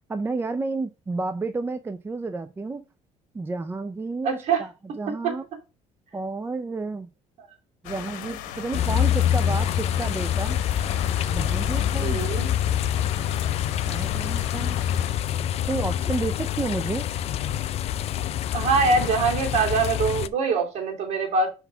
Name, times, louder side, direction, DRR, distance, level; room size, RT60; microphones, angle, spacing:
voice 1, 0.1-2.8 3.3-4.7 5.0-5.5 6.1-7.1 7.8-10.6 11.3-12.2 13.8-14.8 15.7-17.1, right 3 dB, 15° right, 0.5 m, -31 dB
voice 2, 4.2-4.6 5.2-5.3 11.9-12.5 18.5-21.5, right 4 dB, 60° right, 2.8 m, -23 dB
sound 1, 7.8-15.1, left 9 dB, 85° left, 1.2 m, -37 dB
sound 2, 8.7-20.3, left 10 dB, 55° left, 0.5 m, -26 dB
5.6 x 4.1 x 5.6 m
cardioid pair, 105°, 13 cm